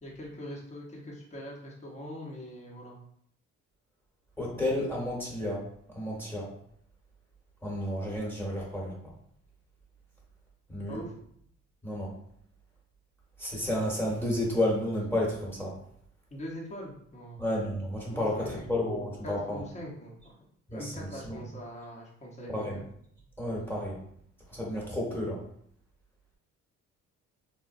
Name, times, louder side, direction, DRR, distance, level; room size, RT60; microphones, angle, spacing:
voice 1, 0.0-3.0 10.9-11.1 16.3-17.5 18.1-18.7 19.2-22.8, equal, 20° left, -3 dB, 0.9 m, -42 dB
voice 2, 4.4-5.6 5.9-6.5 7.6-8.9 10.7-11.0 11.8-12.1 13.4-15.7 17.4-19.6 20.7-21.4 22.5-22.8 23.4-24.0 24.5-25.4, left 1 dB, 5° left, -4 dB, 1.2 m, -31 dB
3.8 x 2.1 x 2.5 m, 0.68 s
cardioid pair, 90°, 30 cm